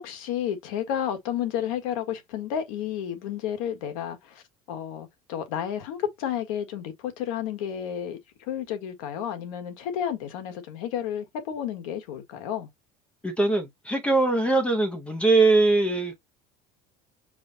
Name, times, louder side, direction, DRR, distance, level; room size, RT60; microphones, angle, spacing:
voice 1, 0.0-4.4 4.7-12.7, left 9 dB, 85° left, 1.5 m, -31 dB
voice 2, 13.2-16.2, right 3 dB, 5° left, 0.7 m, -22 dB
5.0 x 2.3 x 4.0 m
cardioid pair, 175°, 17 cm